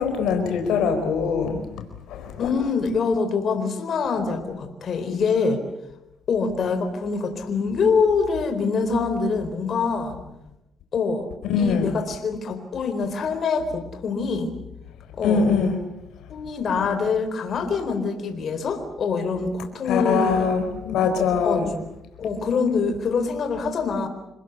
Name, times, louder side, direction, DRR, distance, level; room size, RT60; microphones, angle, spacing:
voice 1, 0.0-1.6 2.1-2.5 11.5-11.9 15.2-15.8 19.9-21.7, left 5 dB, 85° left, 5 dB, 4.3 m, -22 dB
voice 2, 2.4-5.6 6.3-10.2 10.9-11.3 11.6-14.6 15.2-15.4 16.3-20.5 21.4-21.6 22.2-24.1, left 5 dB, 55° left, 6 dB, 4.3 m, -24 dB
28.5 x 20.0 x 8.3 m, 0.87 s
cardioid pair, 90°, 0 cm